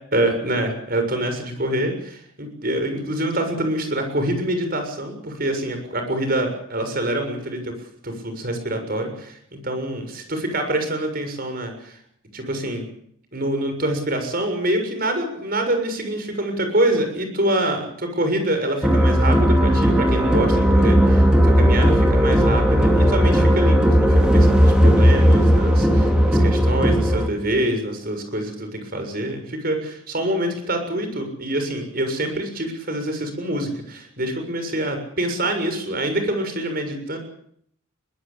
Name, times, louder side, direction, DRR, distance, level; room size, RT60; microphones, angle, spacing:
voice 1, 0.1-7.7 8.0-12.0 12.3-12.9 13.3-37.2, right 1 dB, 45° right, 6 dB, 6.9 m, -25 dB
sound 1, 18.8-27.3, equal, 5° right, 3.5 m, -16 dB
23.0 x 19.5 x 8.6 m, 0.67 s
head